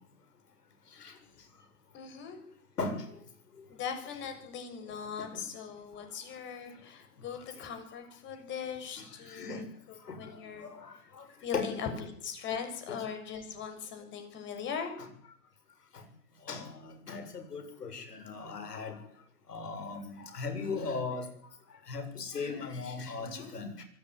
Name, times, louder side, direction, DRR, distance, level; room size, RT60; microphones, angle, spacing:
voice 1, 1.9-2.4 3.7-10.7 11.4-15.0 23.2-23.5, left 7 dB, 25° left, 6 dB, 6.6 m, -40 dB
voice 2, 9.3-9.6 10.1-10.2 10.6-11.3 11.5-11.7 12.9-13.0 16.5-19.0 19.5-21.3 21.9-23.8, left 4 dB, 85° left, 8 dB, 7.8 m, -37 dB
24.5 x 17.5 x 9.8 m, 0.66 s
hypercardioid pair, 140°, 46 cm